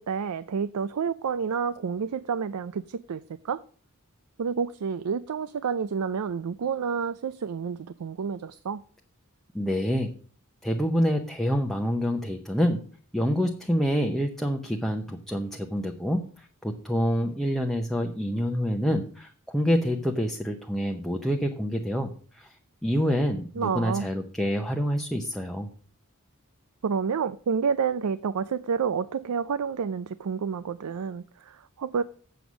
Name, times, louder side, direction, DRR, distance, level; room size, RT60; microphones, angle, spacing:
voice 1, 0.0-3.6 4.4-8.8 23.6-24.1 26.8-32.0, right 6 dB, 90° right, 0.4 m, -29 dB
voice 2, 9.5-10.1 10.6-12.8 13.1-22.5 22.8-25.7, equal, ahead, 0.7 m, -27 dB
7.9 x 7.0 x 6.1 m
head